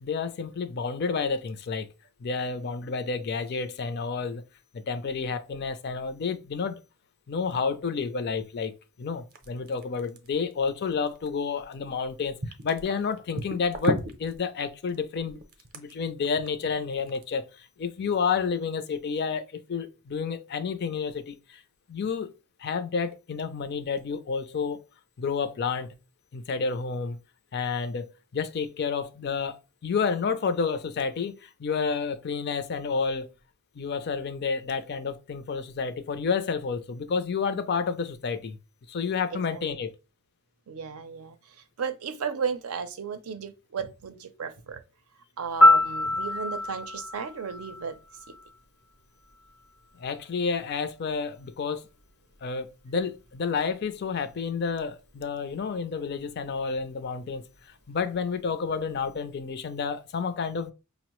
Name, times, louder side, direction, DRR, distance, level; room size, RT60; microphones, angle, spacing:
voice 1, 0.0-1.9 2.2-4.4 4.7-6.8 7.3-8.7 9.0-15.4 15.7-21.6 21.9-22.3 22.6-24.8 25.2-25.9 26.3-27.2 27.5-33.3 33.8-38.6 38.9-39.9 50.0-51.9 52.4-60.7, left 5 dB, 50° left, 0.4 m, -30 dB
sound 1, 9.3-12.0 12.4-17.2, right 1 dB, 45° right, 0.5 m, -35 dB
voice 2, 40.7-41.4 41.8-44.8 45.4-48.0, right 6 dB, 90° right, 0.5 m, -34 dB
Piano, 45.6-48.5 56.7-56.9, left 1 dB, 90° left, 0.7 m, -24 dB
5.0 x 2.0 x 3.0 m
head